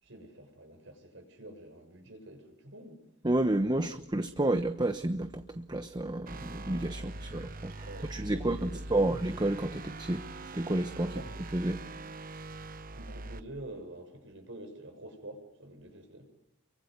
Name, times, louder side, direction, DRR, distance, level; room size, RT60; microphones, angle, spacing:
voice 1, 0.0-3.0 3.7-3.9 6.9-7.2 7.8-9.2 11.1-11.3 12.6-16.3, right 1 dB, 70° right, 7.3 m, -48 dB
voice 2, 3.2-10.3 10.5-11.1 11.5-11.8, right 1 dB, 20° right, 1.0 m, -30 dB
sound 1, 6.3-13.4, right 2 dB, 45° right, 1.0 m, -42 dB
29.0 x 24.0 x 8.1 m
head